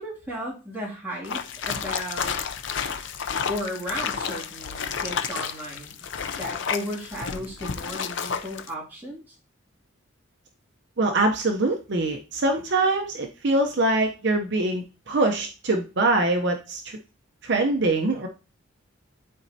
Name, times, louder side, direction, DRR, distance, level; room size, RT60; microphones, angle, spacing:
voice 1, 0.0-2.4 3.5-6.1 6.4-9.3, equal, 10° right, -6 dB, 2.3 m, -35 dB
sound 1, 1.2-8.7, left 6 dB, 60° left, 0.5 m, -31 dB
voice 2, 11.0-17.0 17.4-18.3, right 2 dB, 55° right, 3 dB, 0.6 m, -23 dB
12.0 x 4.2 x 2.7 m, 0.32 s
head